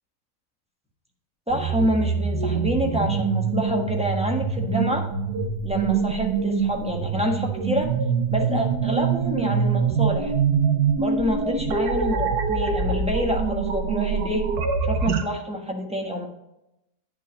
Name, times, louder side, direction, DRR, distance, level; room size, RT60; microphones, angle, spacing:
voice 1, 1.5-5.1 5.6-7.9 8.3-10.3 11.0-14.4 14.8-16.3, equal, 5° right, 1 dB, 1.2 m, -27 dB
sound 1, 1.5-15.2, right 5 dB, 90° right, 1.4 m, -24 dB
9.7 x 5.9 x 4.1 m, 0.88 s
omnidirectional pair, 1.6 m